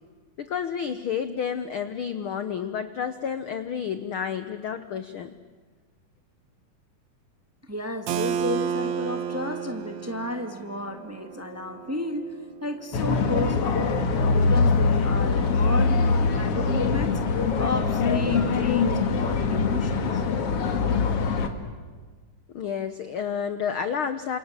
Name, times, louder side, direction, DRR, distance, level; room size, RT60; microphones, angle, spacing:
voice 1, 0.4-5.3 22.5-24.4, left 7 dB, 70° left, 11 dB, 1.2 m, -30 dB
voice 2, 7.6-13.8 14.1-17.2 17.6-20.2, left 1 dB, 10° right, 6 dB, 0.9 m, -33 dB
Keyboard (musical), 8.1-13.6, right 8 dB, 65° right, 2.5 m, -33 dB
sound 1, 12.9-21.5, left 4 dB, 50° left, 2.6 m, -23 dB
29.5 x 27.0 x 7.4 m, 1.4 s
omnidirectional pair, 3.6 m